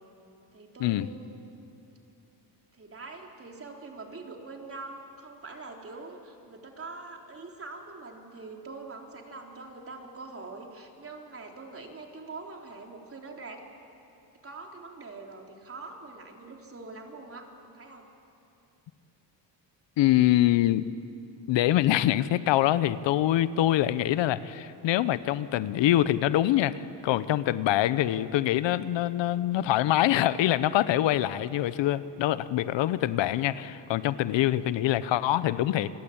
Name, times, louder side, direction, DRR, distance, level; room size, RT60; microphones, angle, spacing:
voice 1, 0.5-1.4 2.7-13.6 14.4-18.1, right 3 dB, 30° right, 2 dB, 3.7 m, -44 dB
voice 2, 20.0-20.9 21.5-35.9, left 13 dB, 80° left, 15 dB, 0.9 m, -24 dB
29.5 x 21.0 x 8.7 m, 2.8 s
cardioid pair, 105°, 43 cm